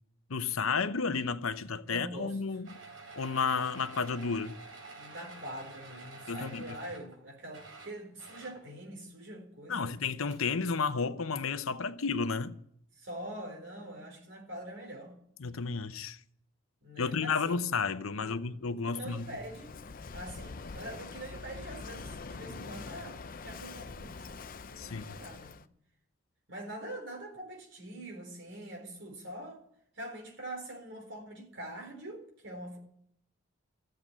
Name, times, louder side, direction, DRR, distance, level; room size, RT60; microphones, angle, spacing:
voice 1, 0.3-2.7 3.2-4.6 6.3-6.8 9.7-12.6 15.4-16.2 17.0-19.3 24.8-25.2, left 5 dB, 90° left, 0.8 m, -32 dB
voice 2, 1.8-2.6 4.9-9.9 12.9-15.2 16.8-17.6 18.1-19.8 20.1-25.6 26.5-29.6 29.9-32.8, right 1 dB, 60° right, 4.1 m, -44 dB
sound 1, 2.6-7.2 7.5-8.7 10.0-10.1 10.3-10.5, right 3 dB, 80° right, 4.0 m, -49 dB
Walk footsteps / Wind / Waves surf, 19.0-25.7, left 4 dB, 45° left, 0.5 m, -44 dB
14.5 x 7.8 x 9.9 m
head